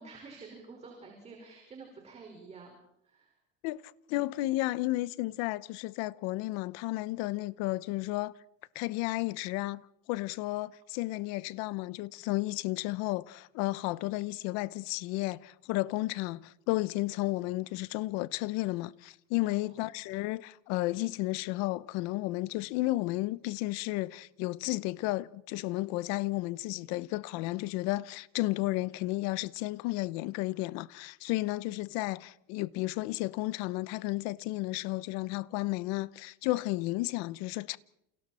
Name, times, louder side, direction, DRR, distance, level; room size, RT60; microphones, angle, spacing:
voice 1, 0.0-2.8 3.0-3.4 19.4-19.9, right 4 dB, 20° right, 5.3 m, -49 dB
voice 2, 4.1-8.4 8.7-9.8 10.1-37.8, left 19 dB, 60° left, 0.9 m, -33 dB
29.0 x 28.5 x 4.4 m
cardioid pair, 155°, 29 cm